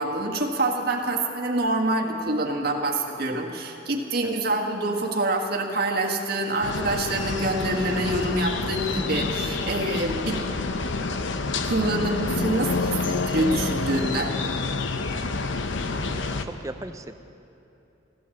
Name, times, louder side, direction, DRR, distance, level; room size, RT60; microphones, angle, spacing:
voice 1, 0.0-10.5 11.6-14.3, right 2 dB, 55° right, 0 dB, 1.6 m, -26 dB
sound 1, 6.6-16.5, left 3 dB, 75° left, 0.7 m, -28 dB
voice 2, 16.1-17.2, right 1 dB, 15° right, 8 dB, 0.6 m, -39 dB
15.5 x 12.5 x 7.2 m, 2.8 s
head